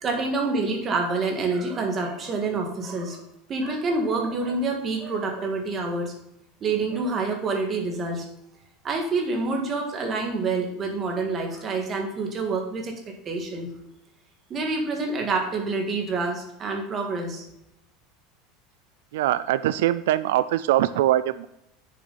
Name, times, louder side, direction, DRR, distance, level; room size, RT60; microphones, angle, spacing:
voice 1, 0.0-3.2 3.5-6.1 6.6-8.3 8.8-12.9 13.3-13.7 14.5-17.5, right 3 dB, 25° right, 2 dB, 1.8 m, -27 dB
voice 2, 19.1-21.5, right 13 dB, 90° right, 15 dB, 0.3 m, -22 dB
9.3 x 6.9 x 4.1 m, 0.82 s
supercardioid pair, 160°, 0 cm